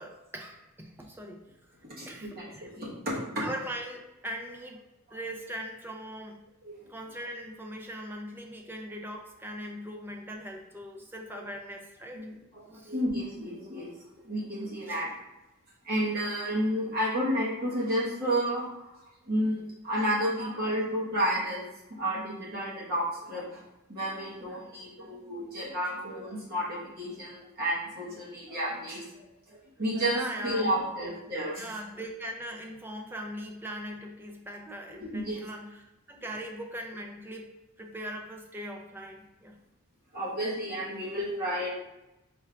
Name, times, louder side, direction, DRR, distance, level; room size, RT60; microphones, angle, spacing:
voice 1, 0.0-1.8 2.1-2.8 3.4-4.8 5.1-6.4 6.9-12.3 12.7-12.9 14.9-15.0 30.1-31.1 31.6-37.5 37.8-39.6, equal, 10° right, 2 dB, 0.4 m, -40 dB
voice 2, 2.0-3.1 6.6-6.8 12.1-13.9 14.2-15.1 15.8-18.9 19.3-21.7 22.0-23.6 23.9-31.6 34.9-35.4 40.1-41.7, equal, 45° right, -6 dB, 1.2 m, -31 dB
4.4 x 2.4 x 3.3 m, 0.96 s
head